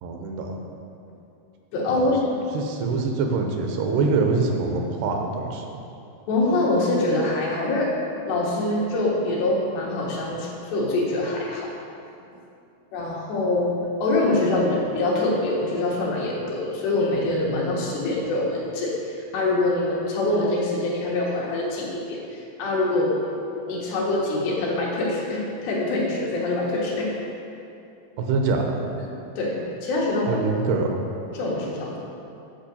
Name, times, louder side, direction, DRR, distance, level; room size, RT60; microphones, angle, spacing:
voice 1, 0.0-0.6 1.9-2.0 2.5-5.7 28.2-28.9 30.3-30.9, right 4 dB, 85° right, 3 dB, 2.9 m, -24 dB
voice 2, 1.7-2.2 6.3-7.9 8.3-11.7 12.9-13.8 14.0-23.2 23.7-27.1 29.3-30.7 31.3-32.0, left 2 dB, 85° left, -4 dB, 3.7 m, -24 dB
9.8 x 4.7 x 7.1 m, 2.7 s
omnidirectional pair, 4.7 m